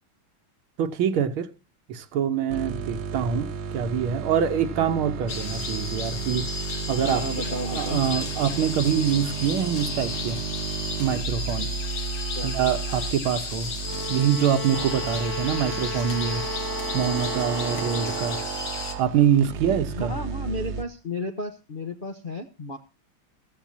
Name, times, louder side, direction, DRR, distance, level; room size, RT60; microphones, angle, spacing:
voice 1, 0.8-1.5 1.9-3.5 3.7-6.5 6.9-7.2 7.7-10.4 11.0-11.7 12.4-13.7 14.1-16.5 16.9-18.4 19.0-20.1, right 8 dB, 75° right, 1.8 m, -25 dB
sound 1, 2.5-20.8, right 6 dB, 55° right, 1.3 m, -33 dB
sound 2, 5.3-18.9, left 4 dB, 70° left, 2.6 m, -34 dB
voice 2, 7.0-8.0 12.3-12.5 19.9-22.8, left 1 dB, 40° left, 0.7 m, -33 dB
sound 3, 13.8-18.5, equal, 5° left, 1.4 m, -34 dB
14.5 x 14.5 x 2.7 m
omnidirectional pair, 2.4 m